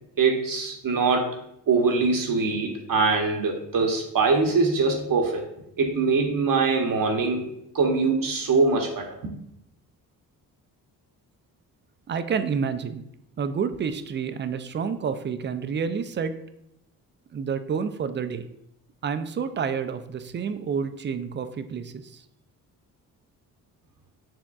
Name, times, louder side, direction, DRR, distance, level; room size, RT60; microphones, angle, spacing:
voice 1, 0.2-1.4 1.7-5.4 5.8-9.3, right 4 dB, 45° right, 2 dB, 0.9 m, -23 dB
voice 2, 12.1-13.0 13.4-16.3 17.3-18.4 19.0-21.9, right 6 dB, 25° right, 10 dB, 0.4 m, -29 dB
6.0 x 3.5 x 2.3 m, 0.80 s
hypercardioid pair, 45°, 45 cm